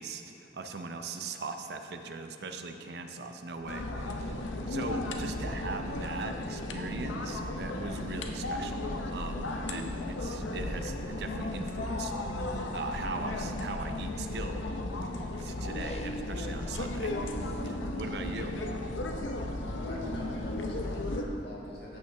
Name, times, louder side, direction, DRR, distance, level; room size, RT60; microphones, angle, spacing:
voice 1, 0.0-12.1 12.7-15.0 15.4-17.3 17.6-18.5, right 3 dB, 60° right, 6 dB, 0.5 m, -40 dB
sound 1, 3.6-21.1, left 1 dB, 35° left, 0.4 m, -44 dB
sound 2, 3.7-21.2, left 2 dB, 90° left, 0.7 m, -35 dB
voice 2, 19.6-22.0, left 1 dB, 60° left, -4 dB, 1.6 m, -44 dB
14.5 x 5.7 x 3.4 m, 3.0 s
head